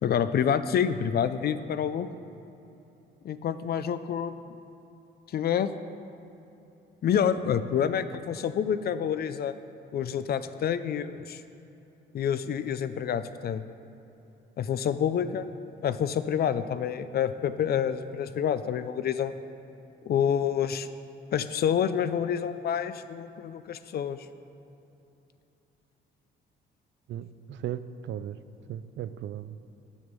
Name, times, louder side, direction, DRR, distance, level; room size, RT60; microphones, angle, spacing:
voice 1, 0.0-2.1 3.2-4.3 5.3-5.7 7.0-9.5 9.9-11.4 12.1-13.6 14.6-15.5 15.8-19.3 20.0-20.9 21.3-24.3, left 8 dB, 55° left, 12 dB, 0.4 m, -28 dB
voice 2, 27.1-28.4 28.7-29.6, right 10 dB, 65° right, 13 dB, 0.4 m, -36 dB
9.5 x 6.3 x 5.3 m, 2.9 s
cardioid pair, 90°, 20 cm